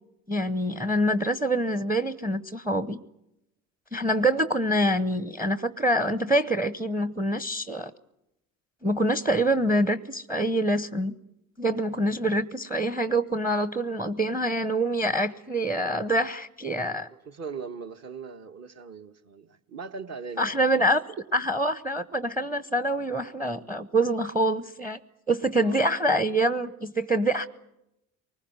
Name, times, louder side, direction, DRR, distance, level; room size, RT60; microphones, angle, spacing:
voice 1, 0.3-3.0 3.9-7.9 8.8-11.1 11.6-17.1 20.4-25.0 25.3-27.5, right 1 dB, 5° right, 0.9 m, -25 dB
voice 2, 17.1-20.6 25.5-25.8, right 5 dB, 40° right, 1.5 m, -40 dB
24.0 x 20.5 x 9.6 m
hypercardioid pair, 60°, 41 cm